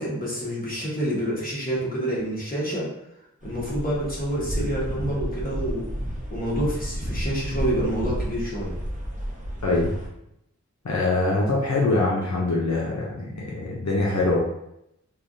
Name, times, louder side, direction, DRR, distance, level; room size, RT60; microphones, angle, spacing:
voice 1, 0.0-2.9 3.4-5.9 6.3-8.7, right 1 dB, 30° left, -6 dB, 1.1 m, -28 dB
sound 1, 3.4-10.1, equal, 25° right, 0.9 m, -31 dB
voice 2, 9.6-9.9 10.8-14.4, left 2 dB, 70° left, -5 dB, 0.6 m, -23 dB
3.2 x 2.3 x 2.6 m, 0.79 s
wide cardioid pair, 45°, 29 cm